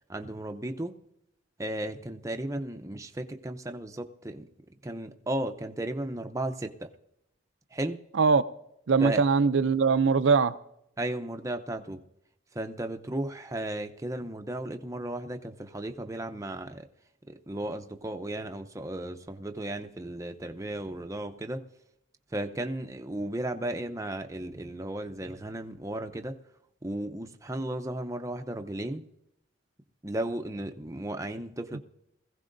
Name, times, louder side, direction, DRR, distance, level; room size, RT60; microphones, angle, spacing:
voice 1, 0.1-1.0 1.6-4.5 4.8-6.9 7.7-8.0 9.0-9.2 11.0-12.0 12.5-16.9 17.3-21.6 22.3-26.4 26.8-29.1 30.0-31.8, right 1 dB, 15° right, 0.6 m, -35 dB
voice 2, 8.9-10.5 31.7-31.8, right 5 dB, 70° right, 0.5 m, -22 dB
21.0 x 15.5 x 2.6 m
head